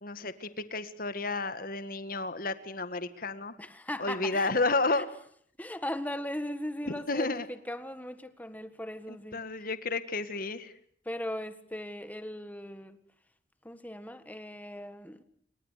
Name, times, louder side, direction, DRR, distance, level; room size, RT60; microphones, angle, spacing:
voice 1, 0.0-3.6 4.0-5.1 7.1-7.5 9.1-10.7, left 3 dB, 50° left, 1.8 m, -31 dB
voice 2, 3.6-4.5 4.9-5.0 5.6-9.7 11.0-13.0 13.6-15.2, left 1 dB, 10° left, 1.6 m, -38 dB
28.5 x 24.5 x 6.6 m
head